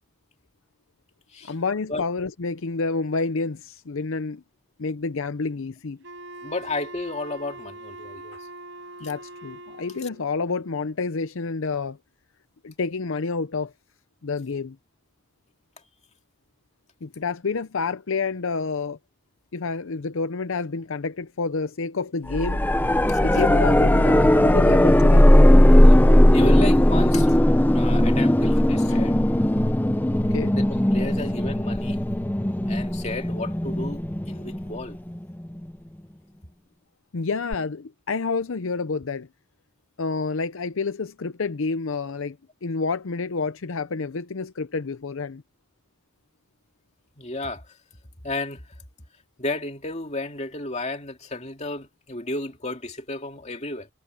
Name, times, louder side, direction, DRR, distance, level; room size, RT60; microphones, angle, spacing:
voice 1, 1.5-4.4 4.8-6.0 8.3-8.4 9.0-12.0 12.6-13.7 14.2-14.8 17.0-19.0 19.5-22.6 23.2-25.3 28.9-29.0 30.3-30.5 37.1-39.3 40.0-45.4, left 4 dB, 70° left, 0.6 m, -29 dB
Wind instrument woodwind instrument, 6.0-10.3, right 2 dB, 60° right, 5.2 m, -42 dB
voice 2, 6.4-8.4 9.0-9.1 23.1-23.2 25.8-26.0 26.3-27.4 27.7-29.2 30.6-32.0 32.7-35.0 47.2-47.8 48.2-48.6 49.4-53.9, left 2 dB, 30° left, 2.5 m, -33 dB
sound 1, 22.3-35.2 37.5-37.6, left 1 dB, 10° left, 0.6 m, -18 dB
head